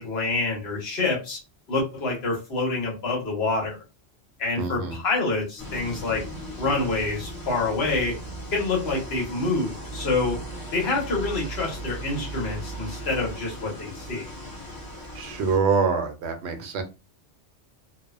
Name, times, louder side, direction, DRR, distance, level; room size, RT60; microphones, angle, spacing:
voice 1, 0.0-1.4 1.7-3.8 4.4-6.2 6.6-8.2 8.5-10.4 10.7-14.3, left 3 dB, 60° left, 1.2 m, -27 dB
voice 2, 4.6-5.0 15.1-16.8, right 5 dB, 70° right, 0.8 m, -25 dB
sound 1, 5.6-15.6, right 1 dB, 20° left, 0.7 m, -37 dB
2.6 x 2.1 x 2.3 m
omnidirectional pair, 1.2 m